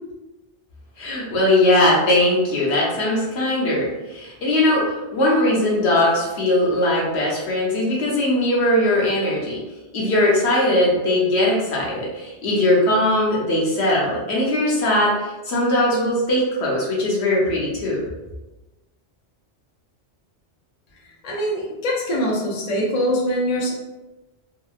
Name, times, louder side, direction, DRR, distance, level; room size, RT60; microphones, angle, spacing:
voice 1, 1.0-4.8 5.1-9.6 9.9-18.0, left 1 dB, 75° left, -4 dB, 1.0 m, -20 dB
voice 2, 21.2-23.7, equal, 50° left, -4 dB, 0.5 m, -23 dB
2.8 x 2.1 x 2.3 m, 1.1 s
omnidirectional pair, 1.1 m